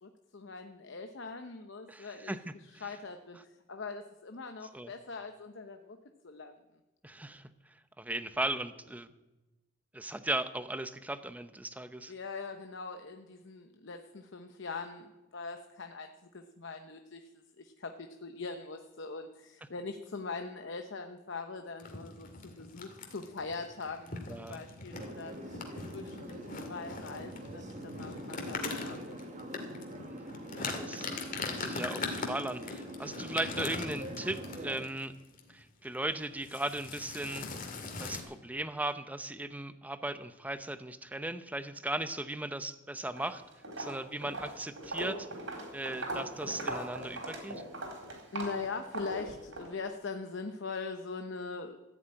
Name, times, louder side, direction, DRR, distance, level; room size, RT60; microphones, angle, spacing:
voice 1, 0.0-2.4 2.6-6.0 6.2-6.5 12.1-25.6 25.9-29.2 48.3-51.8, left 4 dB, 60° left, 6 dB, 0.8 m, -42 dB
voice 2, 1.9-2.8 4.7-4.9 7.0-7.5 8.0-9.1 9.9-12.1 24.3-24.6 30.0-30.3 30.6-31.1 31.4-35.1 35.5-37.5 38.0-43.4 43.8-45.3 45.7-47.6, right 1 dB, 10° right, 11 dB, 0.7 m, -37 dB
sound 1, 21.8-35.0 35.4-35.6 35.8-36.1 36.4-38.2, left 3 dB, 40° left, 2.3 m, -41 dB
sound 2, 24.9-34.8, right 1 dB, 35° right, 1.6 m, -45 dB
Walk footsteps, 43.0-43.3 43.6-49.7, right 1 dB, 70° right, 4.2 m, -40 dB
14.0 x 8.5 x 8.9 m, 1.0 s
head